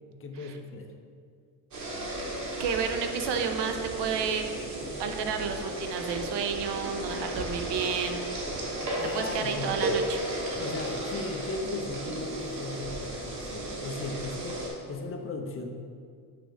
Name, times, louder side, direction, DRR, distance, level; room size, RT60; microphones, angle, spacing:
voice 1, 0.2-0.9 9.0-9.9 10.6-15.7, left 3 dB, 30° left, 4 dB, 0.5 m, -37 dB
sound 1, 1.7-14.7, right 1 dB, 45° right, 1.5 m, -34 dB
voice 2, 2.6-4.5 5.0-8.3 9.1-10.2, right 6 dB, 75° right, 6 dB, 0.7 m, -31 dB
6.8 x 4.9 x 3.4 m, 2.2 s
cardioid pair, 130°, 41 cm